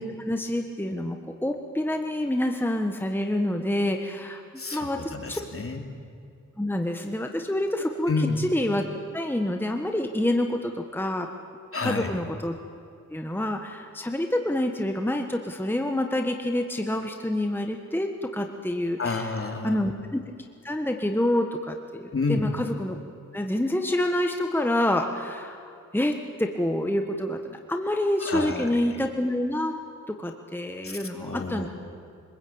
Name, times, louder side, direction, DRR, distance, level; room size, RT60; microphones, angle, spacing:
voice 1, 0.0-4.4 4.7-5.4 6.6-8.9 9.1-11.3 11.8-12.6 13.1-19.3 19.6-20.2 20.6-23.0 23.3-29.7 30.1-31.7, left 1 dB, 5° left, 4 dB, 1.5 m, -27 dB
voice 2, 4.6-5.8 8.1-8.4 11.7-12.1 19.0-19.8 22.1-22.5 28.2-28.8 30.8-31.7, left 3 dB, 45° left, 3 dB, 3.2 m, -29 dB
25.5 x 20.5 x 8.8 m, 2.4 s
cardioid pair, 70°, 31 cm